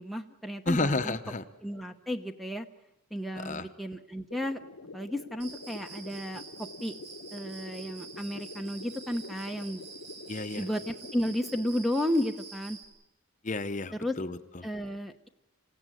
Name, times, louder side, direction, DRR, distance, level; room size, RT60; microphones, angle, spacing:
voice 1, 0.0-1.2 1.6-2.7 3.1-4.6 4.9-6.9 7.3-9.8 10.6-12.8 14.0-14.1 14.6-15.3, left 1 dB, ahead, 7 dB, 0.8 m, -33 dB
voice 2, 0.6-1.4 3.3-3.7 10.3-10.7 13.4-14.7, left 2 dB, 35° left, 10 dB, 0.9 m, -31 dB
sound 1, 4.3-11.8, left 3 dB, 80° left, 1.0 m, -47 dB
Cricket, 5.4-12.8, right 5 dB, 50° right, 5.4 m, -47 dB
27.5 x 16.5 x 9.1 m, 0.97 s
head